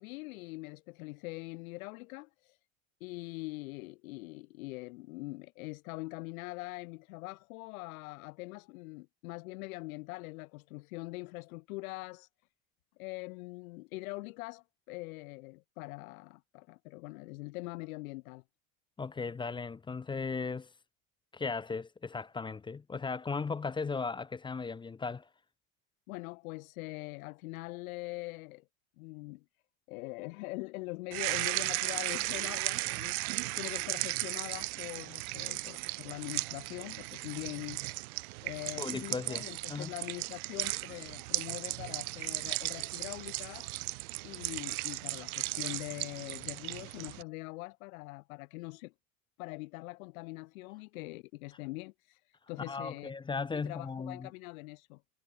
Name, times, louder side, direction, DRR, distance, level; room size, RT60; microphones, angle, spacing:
voice 1, 0.0-2.6 3.0-12.3 13.0-18.4 26.1-28.6 29.0-29.4 29.9-37.8 38.4-43.7 44.2-48.9 49.4-52.2 52.5-53.1 53.7-55.0, left 24 dB, 75° left, 0.9 m, -43 dB
voice 2, 19.0-20.7 21.3-25.3 38.8-39.9 52.7-54.3, left 4 dB, 10° left, 0.5 m, -37 dB
sound 1, 31.1-47.2, right 24 dB, 75° right, 0.6 m, -36 dB
supercardioid pair, 120°, 43 cm